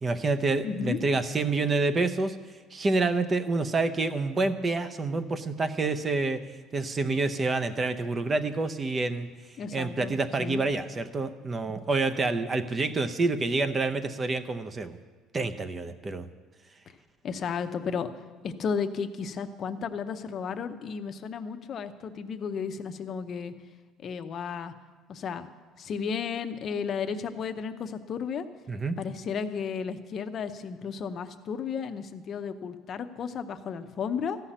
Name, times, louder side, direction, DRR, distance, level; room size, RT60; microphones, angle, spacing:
voice 1, 0.0-2.4 2.7-6.4 6.7-9.3 9.7-15.0 15.3-16.3 28.7-29.0, right 3 dB, 20° right, 10 dB, 0.6 m, -28 dB
voice 2, 0.6-1.0 9.6-10.6 17.2-18.1 18.4-23.5 24.0-24.7 25.1-25.5 25.8-28.4 29.0-34.4, left 6 dB, 35° left, 8 dB, 0.7 m, -33 dB
14.5 x 5.8 x 9.9 m, 1.4 s
cardioid pair, 150°, 0 cm